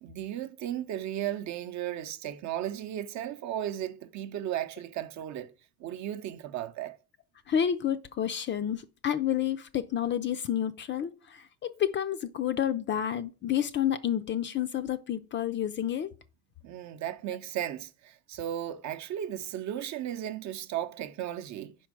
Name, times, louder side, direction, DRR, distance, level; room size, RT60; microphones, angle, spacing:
voice 1, 0.0-5.5 5.8-7.0 16.6-21.7, right 11 dB, 50° right, 0.7 m, -35 dB
voice 2, 7.5-16.1, left 9 dB, 30° left, 0.4 m, -30 dB
5.1 x 4.6 x 6.1 m
cardioid pair, 135°, 36 cm